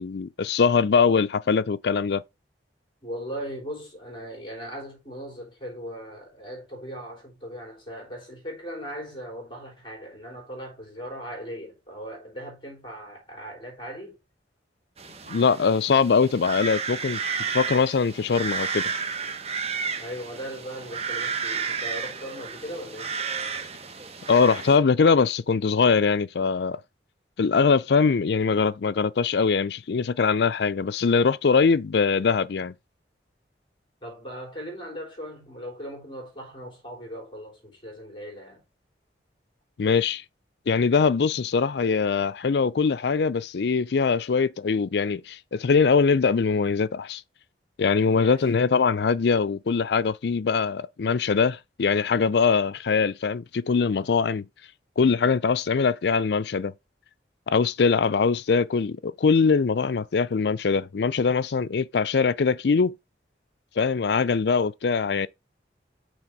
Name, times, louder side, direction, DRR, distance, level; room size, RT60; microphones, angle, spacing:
voice 1, 0.0-2.2 15.3-17.2 17.5-18.9 24.3-26.8 27.4-32.7 39.8-40.2 40.7-47.2 47.8-54.4 55.0-56.7 57.5-62.9 63.8-65.3, left 5 dB, 65° left, 0.4 m, -22 dB
voice 2, 3.0-14.2 20.0-23.2 34.0-38.7 48.0-48.5, equal, 30° left, 3.6 m, -38 dB
sound 1, 15.0-24.8, right 5 dB, 35° right, 0.9 m, -32 dB
6.3 x 4.0 x 5.9 m
head